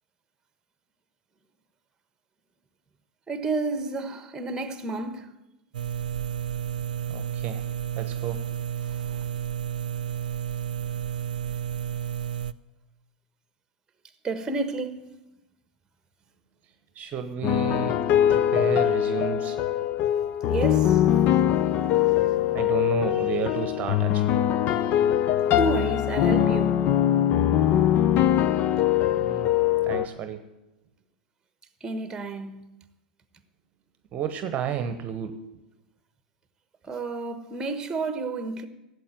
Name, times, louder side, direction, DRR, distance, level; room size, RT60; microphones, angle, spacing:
voice 1, 3.3-5.3 8.8-9.3 14.2-15.1 20.5-21.1 25.5-26.9 31.8-32.6 36.8-38.7, right 3 dB, 15° right, 1.4 m, -31 dB
sound 1, 5.7-12.5, right 9 dB, 75° right, 0.5 m, -31 dB
voice 2, 7.1-7.6 7.9-8.4 16.9-18.0 18.3-19.6 22.5-24.5 29.1-29.5 29.8-30.4 34.1-35.3, right 8 dB, 35° right, 1.1 m, -32 dB
sound 2, 17.4-30.1, left 11 dB, 40° left, 0.7 m, -22 dB
13.0 x 8.2 x 9.1 m
hypercardioid pair, 95°, 5 cm